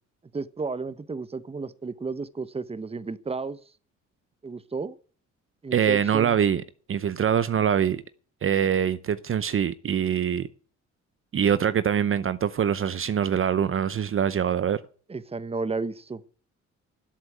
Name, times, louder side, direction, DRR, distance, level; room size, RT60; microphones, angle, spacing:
voice 1, 0.3-3.6 4.4-5.0 5.6-6.4 15.1-16.2, right 4 dB, 20° right, 1.0 m, -33 dB
voice 2, 5.7-6.6 6.9-8.0 8.4-10.5 11.3-14.8, right 8 dB, 45° right, 0.8 m, -24 dB
12.5 x 8.1 x 9.2 m
cardioid pair, 90°, 30 cm